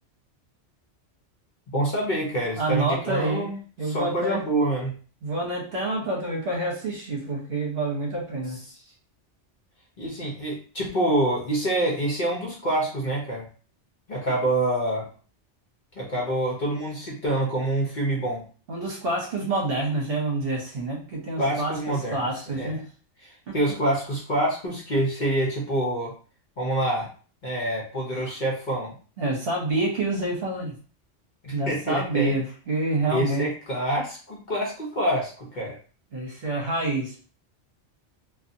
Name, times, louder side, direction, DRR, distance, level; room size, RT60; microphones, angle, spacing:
voice 1, 1.7-3.5 3.8-4.9 10.0-13.5 14.1-15.1 15.9-18.4 21.4-22.7 23.2-26.1 26.6-27.1 27.4-28.9 31.4-32.3 33.1-35.8, right 1 dB, 45° left, -3 dB, 0.8 m, -26 dB
voice 2, 2.6-3.4 3.8-4.4 5.2-8.6 18.7-22.8 23.5-23.6 28.2-28.3 29.2-30.7 31.5-33.5 36.1-37.1, right 2 dB, 55° right, -2 dB, 1.0 m, -27 dB
2.6 x 2.4 x 2.6 m, 0.39 s
omnidirectional pair, 1.2 m